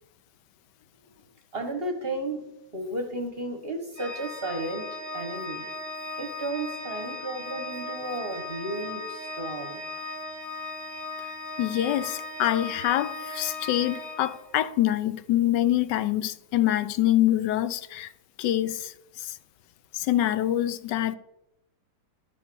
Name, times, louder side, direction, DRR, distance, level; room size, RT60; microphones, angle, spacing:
voice 1, 1.5-2.4 2.7-5.7 6.2-10.0, right 2 dB, 40° right, 1.0 m, -33 dB
Organ, 4.0-14.8, left 2 dB, 30° left, 1.3 m, -37 dB
voice 2, 11.6-18.1 18.4-19.4 19.9-21.2, left 13 dB, 75° left, 1.1 m, -25 dB
11.5 x 5.4 x 6.8 m
omnidirectional pair, 2.1 m